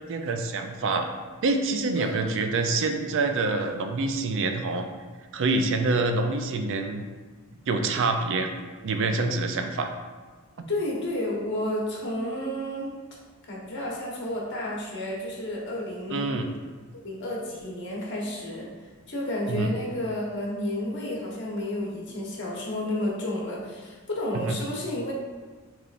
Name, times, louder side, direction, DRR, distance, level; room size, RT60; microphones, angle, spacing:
voice 1, 0.1-1.1 1.4-4.9 5.3-7.0 7.7-8.5 8.8-9.9 16.1-16.5 19.5-19.7 24.3-24.6, right 3 dB, 60° right, 6 dB, 0.4 m, -26 dB
voice 2, 1.9-2.4 10.7-13.2 13.5-16.3 17.0-18.7 19.1-25.1, left 1 dB, 55° left, -3 dB, 1.1 m, -31 dB
6.7 x 3.1 x 2.5 m, 1.4 s
head